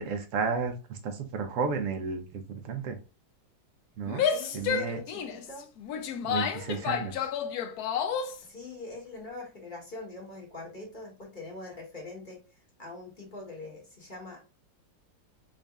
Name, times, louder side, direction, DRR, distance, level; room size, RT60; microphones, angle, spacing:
voice 1, 0.0-3.0 4.0-4.2 4.5-5.0 6.2-7.3, right 5 dB, 60° right, 6 dB, 0.9 m, -32 dB
Female speech woman speaking / Yell, 4.1-8.4, left 7 dB, 70° left, 0.9 m, -30 dB
voice 2, 4.3-5.7 6.6-6.9 8.4-14.4, left 3 dB, 30° left, -2 dB, 1.1 m, -43 dB
3.8 x 2.5 x 3.4 m, 0.31 s
omnidirectional pair, 2.0 m